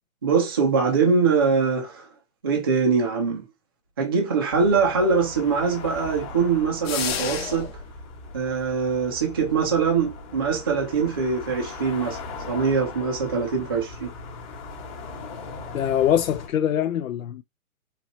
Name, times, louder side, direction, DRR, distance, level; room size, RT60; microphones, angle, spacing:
voice 1, 0.2-2.1 2.4-3.4 4.0-7.7 8.3-12.2 12.5-14.1, right 5 dB, 15° right, 0.5 m, -23 dB
sound 1, 4.5-16.5, left 3 dB, 25° left, 1.2 m, -39 dB
sound 2, 6.8-7.9, left 8 dB, 45° left, 1.0 m, -29 dB
voice 2, 15.7-17.4, left 10 dB, 75° left, 0.6 m, -23 dB
4.5 x 2.9 x 3.9 m
hypercardioid pair, 165°, 42 cm